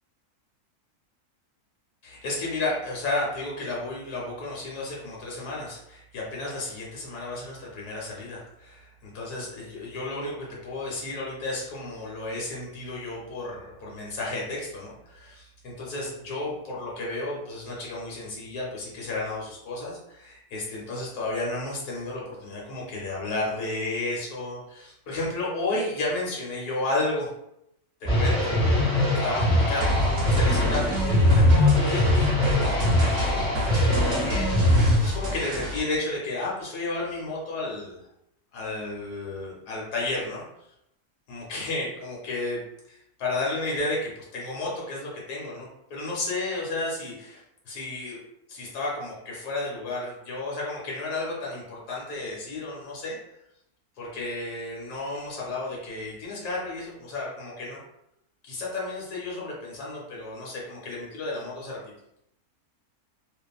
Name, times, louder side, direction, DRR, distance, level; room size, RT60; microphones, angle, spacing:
voice 1, 2.0-27.3 28.1-28.5 29.2-32.1 32.5-38.0 38.5-40.4 41.3-42.6 42.9-47.4 47.7-48.2 48.5-53.2 54.0-57.8 58.4-61.8, left 2 dB, 85° left, -4 dB, 1.3 m, -32 dB
sound 1, 28.0-34.9, left 1 dB, 5° left, 0.5 m, -22 dB
sound 2, 29.8-35.8, equal, 60° right, 0.9 m, -29 dB
2.5 x 2.5 x 2.3 m, 0.80 s
omnidirectional pair, 1.6 m